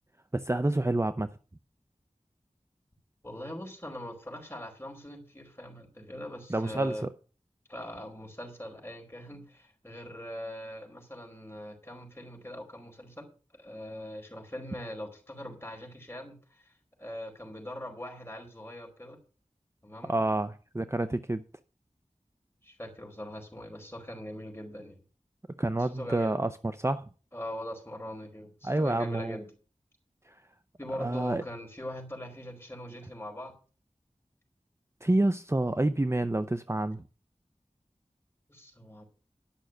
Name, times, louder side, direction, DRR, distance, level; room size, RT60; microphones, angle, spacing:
voice 1, 0.3-1.3 6.5-7.1 20.0-21.4 25.6-26.5 26.8-27.0 28.6-29.4 30.3-30.4 31.0-31.4 35.0-37.0, right 2 dB, 20° right, 0.6 m, -28 dB
voice 2, 3.2-7.0 7.7-13.3 13.5-16.7 17.0-19.2 19.8-20.2 22.6-25.0 25.8-26.4 27.3-29.5 30.8-33.5 38.5-39.0, equal, 20° left, 4.8 m, -41 dB
11.5 x 6.4 x 7.7 m
wide cardioid pair, 55°, 13 cm